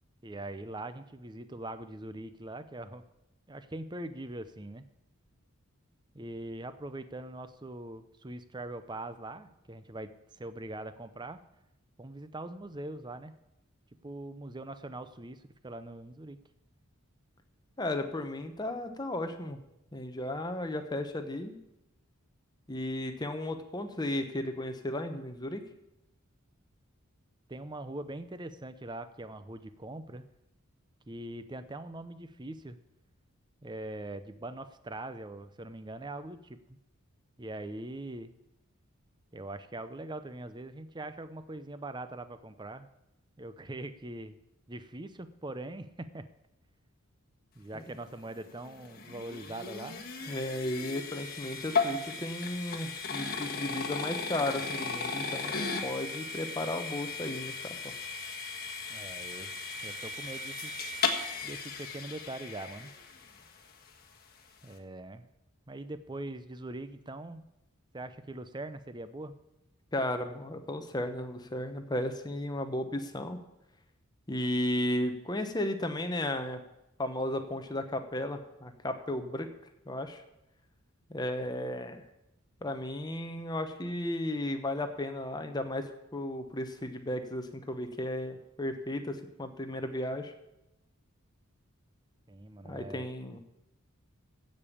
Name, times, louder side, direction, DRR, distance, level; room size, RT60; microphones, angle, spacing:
voice 1, 0.2-3.0 3.5-4.9 6.1-11.4 12.0-13.3 14.0-16.4 27.5-30.3 31.1-32.8 33.6-36.8 37.4-38.3 39.3-42.9 43.4-44.4 44.7-46.2 47.5-50.1 58.9-59.6 59.8-60.8 61.4-62.9 64.6-65.3 65.7-67.4 67.9-69.3 92.3-93.0, right 2 dB, 20° right, 12 dB, 0.6 m, -42 dB
voice 2, 17.8-19.6 19.9-21.6 22.7-25.6 47.7-47.8 50.3-57.8 69.9-73.4 74.3-76.6 77.0-79.5 79.9-80.2 81.1-82.0 82.6-90.3 92.6-93.4, left 1 dB, 20° left, 6 dB, 1.0 m, -34 dB
sound 1, 48.3-63.5, left 4 dB, 45° left, 1.5 m, -36 dB
15.5 x 5.4 x 8.5 m, 0.89 s
head